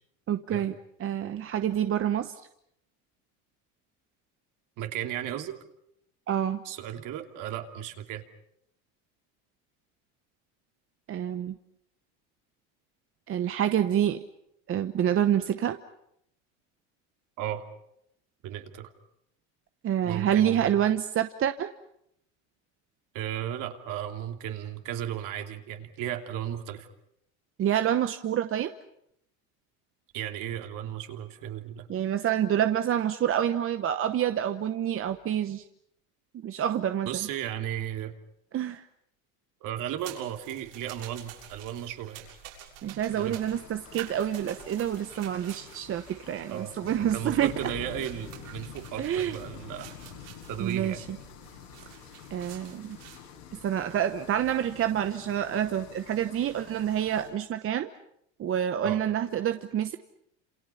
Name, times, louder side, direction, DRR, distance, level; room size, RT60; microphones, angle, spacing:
voice 1, 0.3-0.7 1.0-2.3 6.3-6.6 11.1-11.6 13.3-14.2 14.7-15.8 19.8-21.7 27.6-28.7 31.9-35.6 36.4-37.1 38.5-38.8 42.8-47.5 49.0-49.4 50.6-51.2 52.3-53.0 53.6-57.9 58.4-60.0, right 10 dB, 35° right, 9 dB, 1.1 m, -27 dB
voice 2, 4.8-5.5 6.6-8.2 17.4-17.6 18.4-18.9 20.0-20.8 23.1-26.9 30.1-31.9 37.0-38.1 39.6-42.3 43.1-43.4 46.5-49.9 50.5-51.0 58.8-59.1, right 11 dB, 60° right, 5 dB, 3.0 m, -35 dB
sound 1, 40.0-53.2, right 10 dB, 80° right, 6.9 m, -48 dB
sound 2, 43.0-57.3, left 7 dB, 80° left, 7.7 m, -47 dB
29.5 x 28.0 x 5.8 m, 0.76 s
supercardioid pair, 110°, 36 cm